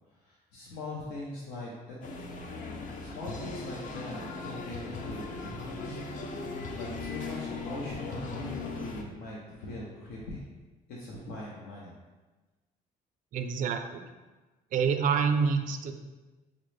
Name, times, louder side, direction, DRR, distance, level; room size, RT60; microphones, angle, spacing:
voice 1, 0.1-2.0 3.0-10.4 10.9-12.0, left 2 dB, 90° left, -4 dB, 0.6 m, -41 dB
sound 1, 2.0-9.0, left 3 dB, 50° left, 0.5 m, -38 dB
voice 2, 13.3-14.1 14.7-15.9, right 6 dB, 50° right, 7 dB, 0.4 m, -27 dB
5.1 x 2.0 x 3.1 m, 1.2 s
cardioid pair, 110°, 17 cm